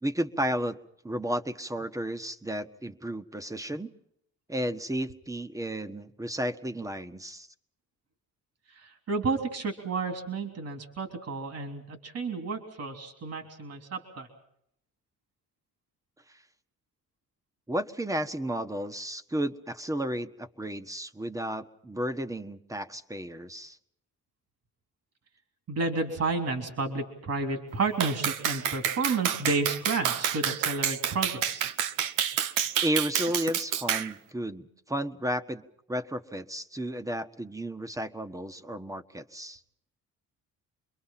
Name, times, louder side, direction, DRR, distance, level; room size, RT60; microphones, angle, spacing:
voice 1, 0.0-0.8 1.0-3.9 4.5-7.5 16.3-16.4 17.7-23.8 32.8-35.6 35.9-39.6, equal, 10° right, 10 dB, 1.3 m, -33 dB
voice 2, 8.7-14.3 25.7-31.7, right 3 dB, 55° right, 5 dB, 3.5 m, -31 dB
Clapping, 28.0-34.1, right 9 dB, 90° right, 1.0 m, -29 dB
28.0 x 22.5 x 5.8 m, 0.74 s
cardioid pair, 90°, 30 cm